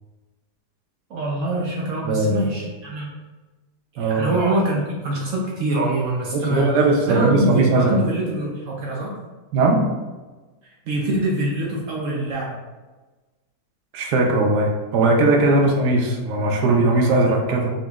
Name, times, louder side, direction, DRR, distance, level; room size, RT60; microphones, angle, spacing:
voice 1, 1.1-3.1 3.9-6.7 7.1-9.1 10.9-12.6, right 1 dB, 65° right, -3 dB, 0.8 m, -24 dB
voice 2, 2.0-2.5 4.0-4.3 6.3-8.0 9.5-9.8 13.9-17.7, right 2 dB, 80° right, 1 dB, 1.2 m, -19 dB
4.0 x 2.9 x 2.3 m, 1.2 s
omnidirectional pair, 1.7 m